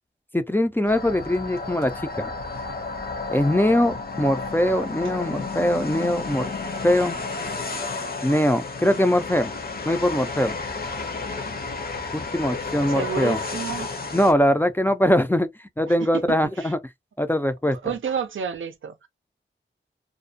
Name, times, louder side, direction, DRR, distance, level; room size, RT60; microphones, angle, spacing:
voice 1, 0.3-2.3 3.3-6.4 6.8-7.2 8.2-9.5 9.9-10.5 12.1-13.4 14.1-15.5 15.8-16.8 17.2-17.8, left 1 dB, 10° left, 0.3 m, -22 dB
sound 1, 0.9-14.3, left 3 dB, 50° left, 0.6 m, -32 dB
voice 2, 12.9-13.9 15.9-16.7 17.6-19.1, right 7 dB, 85° right, 0.5 m, -31 dB
2.5 x 2.1 x 2.5 m
wide cardioid pair, 70°, 20 cm